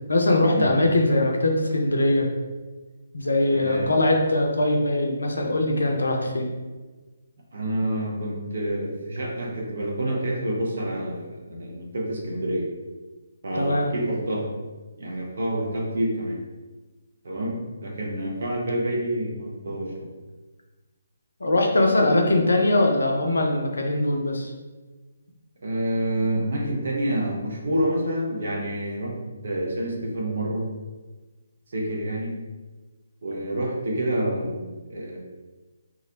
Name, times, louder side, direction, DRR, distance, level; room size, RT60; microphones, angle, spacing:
voice 1, 0.1-2.3 3.1-6.5 13.5-13.9 21.4-24.5, left 1 dB, 65° left, 2 dB, 0.4 m, -21 dB
voice 2, 3.5-4.0 7.5-12.7 13.4-14.5 15.0-16.4 17.2-20.1 25.6-30.7 31.7-32.3 33.2-35.2, right 1 dB, 50° right, -1 dB, 0.6 m, -28 dB
2.4 x 2.0 x 2.7 m, 1.2 s
figure-of-eight pair, 140°, 0 cm